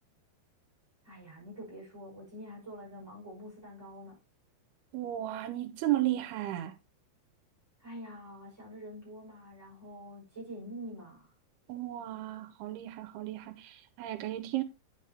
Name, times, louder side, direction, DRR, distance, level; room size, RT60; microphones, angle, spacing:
voice 1, 1.0-4.2 7.8-11.3, equal, 5° right, 4.9 m, -46 dB
voice 2, 4.9-6.7 11.7-14.6, right 14 dB, 85° right, 2.7 m, -34 dB
9.6 x 6.4 x 2.9 m
omnidirectional pair, 4.6 m